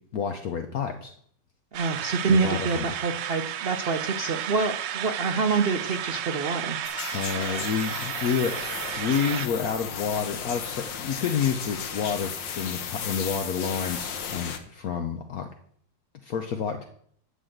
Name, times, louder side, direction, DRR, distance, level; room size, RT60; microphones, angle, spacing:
voice 1, 0.1-1.1 2.3-2.9 7.1-8.6 9.0-15.5 16.2-16.9, left 7 dB, 60° left, 6 dB, 1.1 m, -29 dB
voice 2, 1.7-6.8, right 4 dB, 60° right, 6 dB, 0.6 m, -26 dB
sound 1, 1.7-9.5, right 10 dB, 80° right, 1.3 m, -33 dB
sound 2, 6.8-14.6, left 7 dB, 80° left, 1.7 m, -35 dB
11.0 x 4.1 x 7.8 m, 0.62 s
omnidirectional pair, 1.9 m